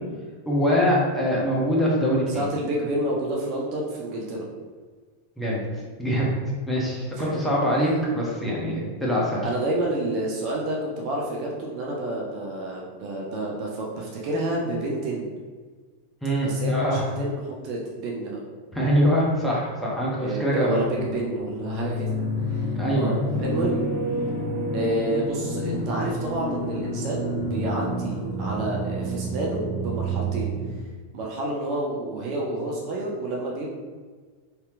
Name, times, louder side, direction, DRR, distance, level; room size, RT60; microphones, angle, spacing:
voice 1, 0.5-2.4 5.4-5.6 6.0-6.3 6.7-9.5 16.2-17.1 18.7-20.8 22.8-23.2, equal, 5° left, -5 dB, 0.9 m, -23 dB
voice 2, 2.3-4.5 7.2-7.3 9.4-15.3 16.4-18.4 20.2-22.2 22.5-22.6 22.9-23.1 23.4-23.8 24.7-30.5 31.1-33.7, right 1 dB, 40° right, -2 dB, 0.5 m, -29 dB
sound 1, 20.8-30.7, right 1 dB, 45° left, 0.9 m, -29 dB
3.3 x 2.8 x 2.4 m, 1.5 s
figure-of-eight pair, 90°, 0 cm